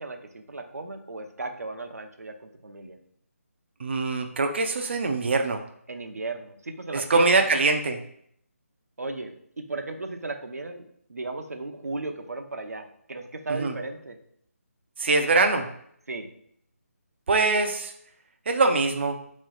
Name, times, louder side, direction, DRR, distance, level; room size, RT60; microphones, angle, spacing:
voice 1, 0.0-3.0 5.9-7.6 9.0-14.2 16.1-16.3, right 3 dB, 85° right, 5 dB, 0.7 m, -36 dB
voice 2, 3.8-5.6 6.9-8.0 13.5-13.7 15.0-15.7 17.3-17.9 18.5-19.2, right 3 dB, 45° right, 5 dB, 0.5 m, -23 dB
4.0 x 3.1 x 3.8 m, 0.67 s
figure-of-eight pair, 165°, 8 cm